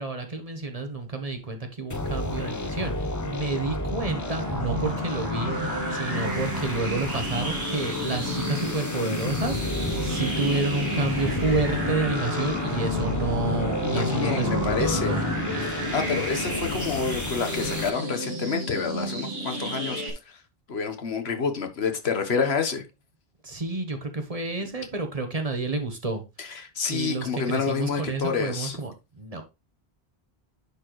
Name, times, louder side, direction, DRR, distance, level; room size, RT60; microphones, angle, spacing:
voice 1, 0.0-15.3 23.4-26.2 26.5-29.4, right 3 dB, 35° right, 1.2 m, -30 dB
sound 1, 1.9-17.9, left 2 dB, 20° left, 0.7 m, -31 dB
sound 2, 4.1-20.1, right 1 dB, 70° right, 1.8 m, -32 dB
voice 2, 13.9-15.2 15.9-20.4 20.7-22.8 26.4-26.5 26.8-28.8, left 5 dB, 80° left, 1.4 m, -28 dB
10.0 x 4.4 x 3.1 m
omnidirectional pair, 1.1 m